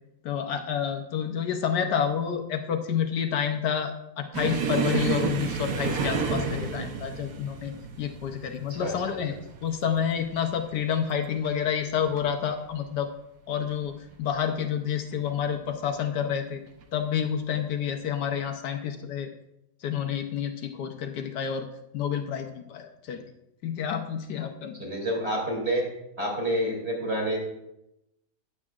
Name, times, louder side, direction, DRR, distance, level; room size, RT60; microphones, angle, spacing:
voice 1, 0.2-7.7 8.0-9.3 9.6-13.1 13.5-16.6 16.9-19.3 19.8-21.7 21.9-23.2 23.6-24.8, left 8 dB, 70° left, 4 dB, 1.3 m, -29 dB
sound 1, 4.3-11.6 11.9-12.2 12.6-12.7 13.6-14.1 15.1-15.3 16.7-16.8, right 5 dB, 65° right, 1.4 m, -31 dB
voice 2, 24.8-25.8 26.2-27.4, equal, 35° right, -1 dB, 3.1 m, -28 dB
15.0 x 9.7 x 2.4 m, 0.85 s
omnidirectional pair, 1.9 m